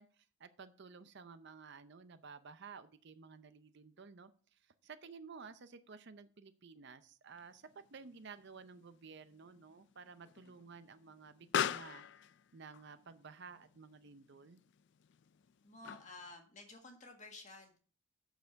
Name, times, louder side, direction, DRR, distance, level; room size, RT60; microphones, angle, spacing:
voice 1, 0.0-12.0 12.5-14.6, right 5 dB, 50° right, 11 dB, 0.6 m, -54 dB
Explosion, 7.3-16.3, left 9 dB, 55° left, 0.3 m, -44 dB
voice 2, 15.6-17.8, left 3 dB, 35° left, 3 dB, 1.6 m, -53 dB
8.0 x 6.7 x 4.6 m, 0.41 s
head